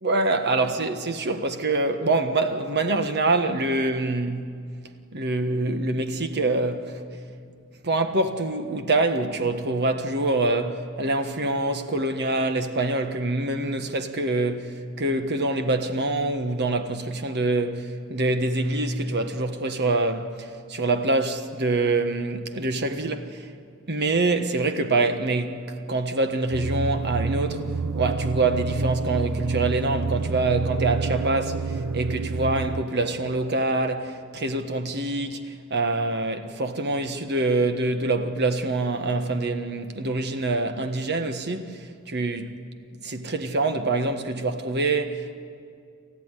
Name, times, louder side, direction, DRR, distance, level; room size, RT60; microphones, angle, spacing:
voice 1, 0.0-4.5 5.1-7.0 7.8-23.5 23.9-27.6 27.9-42.5 43.0-45.4, right 2 dB, 55° right, 1.5 m, -25 dB
sound 1, 26.5-32.8, right 4 dB, 85° right, 0.6 m, -28 dB
28.0 x 14.5 x 9.8 m
head